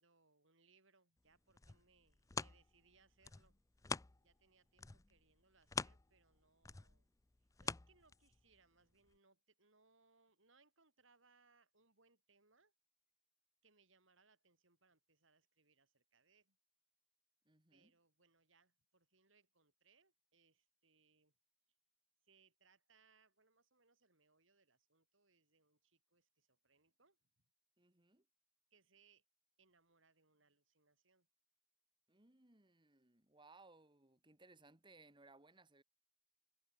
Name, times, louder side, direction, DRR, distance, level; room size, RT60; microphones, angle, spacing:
voice 1, 0.0-3.6 4.2-7.1 7.6-12.7 13.6-16.6 17.7-21.3 22.2-27.3 28.7-29.2 29.6-31.3, right 4 dB, 65° right, 5.8 m, -74 dB
sound 1, 1.3-4.5 4.8-8.6 9.1-9.2, left 4 dB, 15° left, 0.5 m, -46 dB
voice 2, 17.5-18.0 27.8-28.3 32.1-35.8, right 3 dB, 25° right, 2.0 m, -65 dB
head